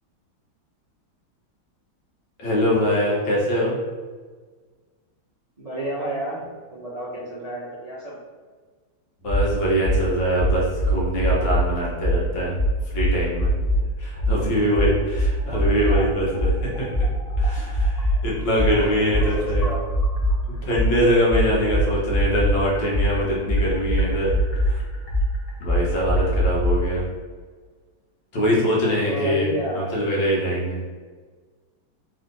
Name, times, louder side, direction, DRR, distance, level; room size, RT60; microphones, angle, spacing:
voice 1, 2.4-3.7 9.2-12.6 12.9-13.5 14.0-17.0 17.4-19.7 20.5-24.3 24.6-24.8 25.6-27.0 28.3-30.8, equal, 65° left, -4 dB, 1.9 m, -23 dB
voice 2, 5.6-6.4 6.7-8.1 14.5-14.9 15.4-16.1 18.7-19.8 26.2-26.4 28.8-30.0, right 1 dB, 50° right, -8 dB, 0.4 m, -32 dB
sound 1, 9.3-9.4 9.8-10.0 10.3-11.6 12.0-12.2 12.5-13.8 14.2-14.3 14.7-16.0 16.3-20.3 20.7-26.7, equal, 85° left, 0.5 m, -21 dB
3.6 x 3.2 x 3.9 m, 1.5 s
omnidirectional pair, 2.3 m